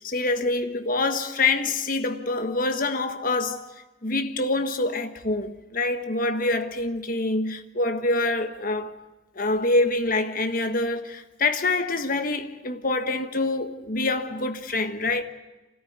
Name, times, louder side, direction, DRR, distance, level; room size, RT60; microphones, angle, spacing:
voice 1, 0.0-3.7 4.0-9.0 9.3-15.2, left 2 dB, 45° left, 1.4 m, -26 dB
29.5 x 13.5 x 9.6 m
head